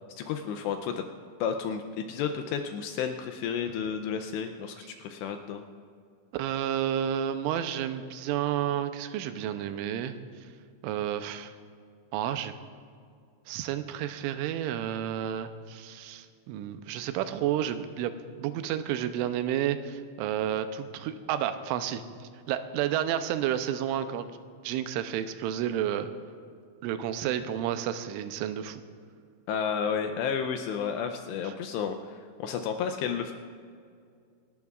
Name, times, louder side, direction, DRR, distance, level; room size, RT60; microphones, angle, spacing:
voice 1, 0.2-1.1 1.4-5.6 29.5-33.3, left 7 dB, 85° left, 6 dB, 2.5 m, -32 dB
voice 2, 6.3-10.2 10.8-11.5 12.1-12.5 13.5-18.1 18.4-22.0 22.5-24.3 24.6-26.1 26.8-28.8 31.4-31.5, right 10 dB, 85° right, 10 dB, 3.1 m, -31 dB
27.0 x 12.0 x 2.4 m, 2.3 s
omnidirectional pair, 5.4 m